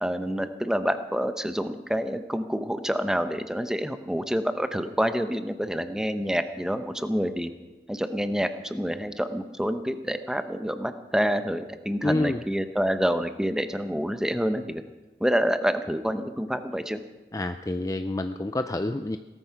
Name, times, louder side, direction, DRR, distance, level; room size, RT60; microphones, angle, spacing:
voice 1, 0.0-7.5 7.9-14.8 15.2-17.0, equal, 5° right, 9 dB, 0.8 m, -27 dB
voice 2, 12.0-12.4 17.3-19.2, left 2 dB, 20° left, 9 dB, 0.4 m, -28 dB
18.0 x 13.5 x 5.9 m, 1.2 s
head